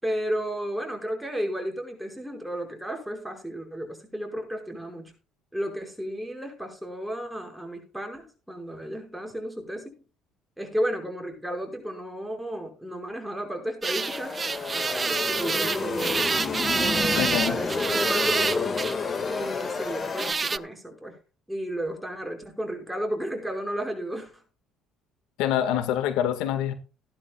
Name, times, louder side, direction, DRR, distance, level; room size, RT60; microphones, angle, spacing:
voice 1, 0.0-5.1 5.5-9.9 10.6-14.4 14.7-16.3 16.7-18.8 19.3-21.1 21.5-24.4, equal, 5° right, 5.6 m, -33 dB
sound 1, 13.8-20.6, right 4 dB, 25° right, 0.5 m, -28 dB
sound 2, 14.0-20.3, left 5 dB, 30° left, 1.9 m, -30 dB
voice 2, 17.1-17.6 25.4-26.7, left 10 dB, 85° left, 1.8 m, -26 dB
16.5 x 12.0 x 2.4 m
cardioid pair, 120°, 0 cm